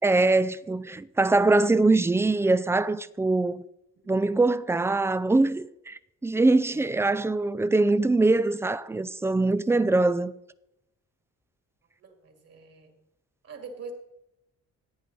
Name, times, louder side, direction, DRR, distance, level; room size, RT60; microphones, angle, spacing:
voice 1, 0.0-3.6 4.1-10.3, right 2 dB, 10° right, 0.3 m, -23 dB
voice 2, 12.0-12.9 13.4-13.9, right 5 dB, 50° right, 2.4 m, -44 dB
15.0 x 9.3 x 4.2 m
cardioid pair, 135°, 32 cm